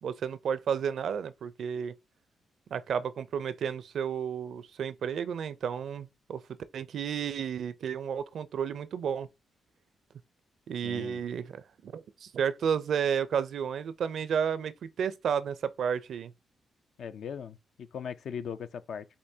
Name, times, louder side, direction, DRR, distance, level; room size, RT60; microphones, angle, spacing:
voice 1, 0.0-1.9 2.7-6.4 6.7-9.3 10.7-16.3, right 7 dB, 70° right, 0.4 m, -32 dB
voice 2, 10.8-11.2 17.0-19.1, left 7 dB, 70° left, 0.4 m, -39 dB
6.7 x 2.6 x 2.7 m
supercardioid pair, 55°, 0 cm